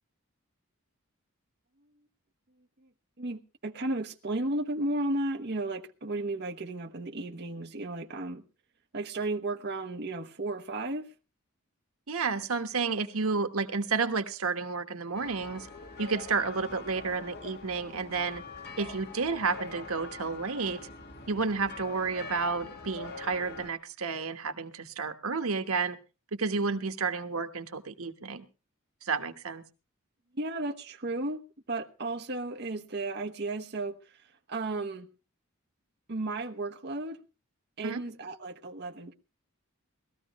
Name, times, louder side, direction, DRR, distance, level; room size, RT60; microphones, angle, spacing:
voice 1, 3.2-8.4 8.9-11.1 30.3-31.4 31.7-34.2 34.5-35.1 36.1-37.2 37.8-39.1, right 2 dB, 50° right, 1.1 m, -34 dB
voice 2, 12.1-15.7 16.0-18.4 18.8-20.8 21.3-26.0 26.3-28.4 29.0-29.6 37.8-38.0, right 4 dB, 90° right, 1.3 m, -31 dB
sound 1, 15.1-23.7, left 3 dB, 50° left, 1.6 m, -44 dB
19.5 x 14.0 x 3.1 m
head